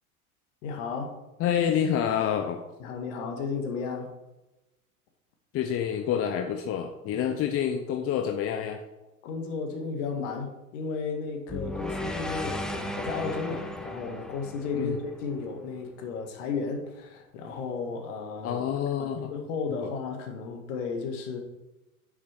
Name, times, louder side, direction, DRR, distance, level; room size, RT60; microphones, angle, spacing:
voice 1, 0.6-1.1 2.8-4.1 9.2-18.6 19.0-21.4, left 4 dB, 55° left, 4 dB, 2.1 m, -34 dB
voice 2, 1.4-2.6 5.5-8.8 14.7-15.0 18.4-19.3 19.8-19.9, left 9 dB, 30° left, 5 dB, 0.9 m, -28 dB
sound 1, 11.5-15.7, left 1 dB, ahead, 0.8 m, -35 dB
9.4 x 6.5 x 4.6 m, 1.0 s
figure-of-eight pair, 85°, 44 cm